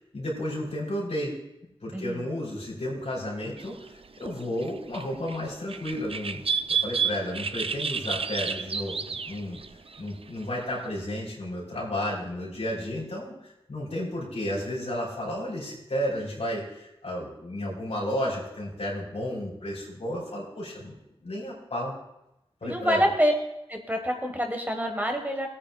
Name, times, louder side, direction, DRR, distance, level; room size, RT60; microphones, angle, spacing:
voice 1, 0.1-1.4 1.8-6.4 6.7-9.6 10.0-21.0 21.2-22.0 22.6-23.0, equal, 85° left, -4 dB, 3.7 m, -32 dB
voice 2, 1.9-2.3 22.6-23.3 23.7-25.5, equal, 15° right, 3 dB, 1.4 m, -26 dB
sound 1, 3.6-3.9 4.2-4.3 4.6-5.4 5.7-10.1 10.4-10.6, right 6 dB, 60° right, 0.4 m, -30 dB
18.5 x 8.6 x 2.3 m, 0.89 s
wide cardioid pair, 65°, 11 cm